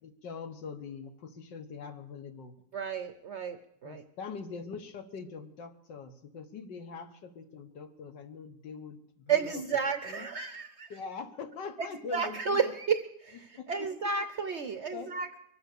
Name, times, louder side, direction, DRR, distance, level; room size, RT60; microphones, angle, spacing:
voice 1, 0.0-2.6 3.8-9.6 10.1-10.3 10.9-12.7 13.6-14.1 14.9-15.2, left 5 dB, 90° left, 8 dB, 1.9 m, -43 dB
voice 2, 2.7-4.0 9.3-10.9 12.1-15.4, right 6 dB, 65° right, 9 dB, 0.7 m, -32 dB
23.0 x 8.1 x 6.7 m, 0.79 s
omnidirectional pair, 1.9 m